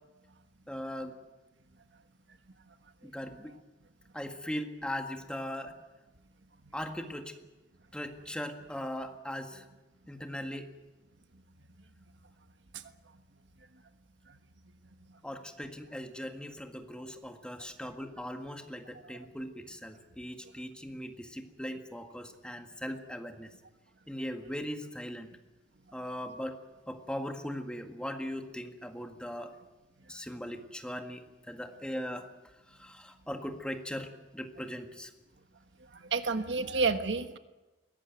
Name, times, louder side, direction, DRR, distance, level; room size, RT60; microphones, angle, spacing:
voice 1, 0.7-1.2 3.0-3.6 4.1-5.8 6.7-7.3 7.9-9.6 10.1-10.7 15.2-23.5 24.1-25.3 25.9-26.6 26.9-29.5 30.1-32.3 32.7-35.1, equal, 5° left, 5 dB, 1.8 m, -39 dB
voice 2, 35.9-37.4, right 4 dB, 80° right, 9 dB, 1.4 m, -30 dB
22.0 x 18.0 x 9.3 m, 1.1 s
head